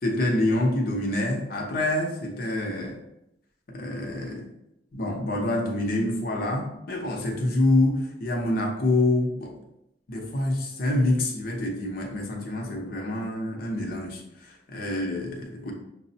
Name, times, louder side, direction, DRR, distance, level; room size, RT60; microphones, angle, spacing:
voice 1, 0.0-3.0 3.7-4.5 4.9-9.5 10.1-15.7, left 1 dB, 50° left, 0 dB, 0.7 m, -26 dB
5.9 x 2.0 x 2.7 m, 0.84 s
head